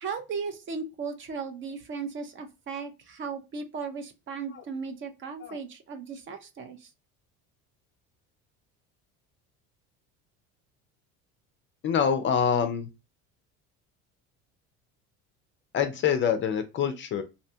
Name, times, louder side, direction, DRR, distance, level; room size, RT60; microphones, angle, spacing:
voice 1, 0.0-6.9, right 5 dB, 35° right, 0.5 m, -36 dB
voice 2, 11.8-12.9 15.7-17.2, left 7 dB, 35° left, 0.4 m, -26 dB
2.7 x 2.2 x 2.6 m
supercardioid pair, 105°, 35 cm